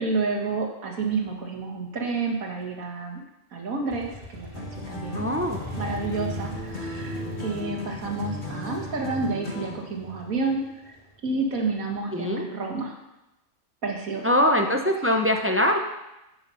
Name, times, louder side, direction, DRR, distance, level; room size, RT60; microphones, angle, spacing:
voice 1, 0.0-3.2 3.5-5.2 5.8-11.0 11.2-12.9 13.8-14.7 15.1-15.2 15.7-15.8, right 3 dB, 85° right, 2 dB, 2.0 m, -30 dB
Motorcycle, 3.9-11.5, left 1 dB, 45° right, 1.8 m, -40 dB
sound 1, 4.5-9.9, left 2 dB, 50° left, 1.6 m, -36 dB
voice 2, 5.1-5.6 12.1-12.5 14.2-15.8, left 1 dB, 15° right, 4 dB, 0.4 m, -22 dB
8.8 x 7.8 x 5.6 m, 0.94 s
omnidirectional pair, 1.4 m